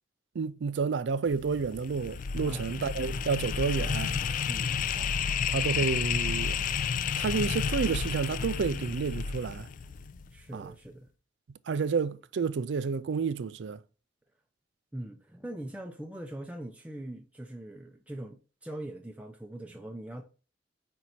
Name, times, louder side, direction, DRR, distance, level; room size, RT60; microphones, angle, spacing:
voice 1, 0.4-4.1 5.5-6.6 7.2-9.7 10.5-10.7 11.7-13.8, right 5 dB, 80° right, 0.4 m, -30 dB
sound 1, 1.3-10.4, left 6 dB, 45° left, 0.4 m, -31 dB
voice 2, 4.5-4.8 10.3-11.1 14.9-20.2, right 1 dB, 10° right, 0.5 m, -41 dB
5.2 x 4.6 x 4.2 m
head